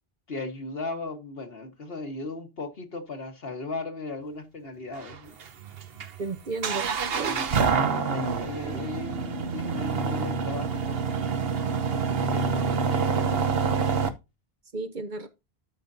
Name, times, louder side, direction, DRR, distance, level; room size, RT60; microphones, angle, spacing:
voice 1, 0.3-5.4 7.2-11.2 11.9-13.8, left 3 dB, 70° left, 1.5 m, -37 dB
sound 1, 5.0-14.1, right 5 dB, 70° right, 1.1 m, -27 dB
voice 2, 6.2-6.9 7.2-7.6 14.7-15.3, right 3 dB, 50° right, 1.0 m, -33 dB
12.5 x 5.3 x 2.6 m
omnidirectional pair, 1.0 m